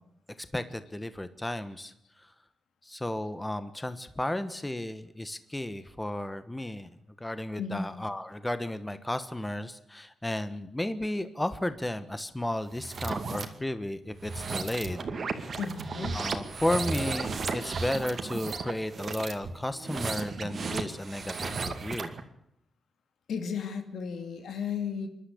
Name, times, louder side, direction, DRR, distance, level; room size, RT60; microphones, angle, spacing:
voice 1, 0.5-1.9 2.8-6.9 7.2-15.0 16.1-22.1, left 1 dB, 10° left, 11 dB, 1.2 m, -33 dB
sound 1, 12.7-13.5 14.1-22.2, right 4 dB, 50° right, 2.3 m, -34 dB
voice 2, 15.6-16.2 23.3-25.1, left 6 dB, 85° left, 7 dB, 2.6 m, -34 dB
27.5 x 12.0 x 8.5 m, 0.78 s
cardioid pair, 105°, 0 cm